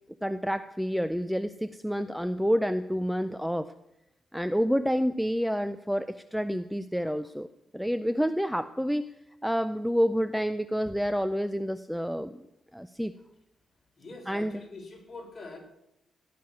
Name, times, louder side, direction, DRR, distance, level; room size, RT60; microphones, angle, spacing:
voice 1, 0.2-3.7 4.3-7.5 7.7-9.1 9.4-12.4 12.7-13.1 14.3-14.6, equal, ahead, 11 dB, 0.5 m, -28 dB
voice 2, 14.0-15.6, left 3 dB, 35° left, 0 dB, 4.7 m, -44 dB
17.0 x 6.1 x 9.7 m, 0.86 s
cardioid pair, 110°, 0 cm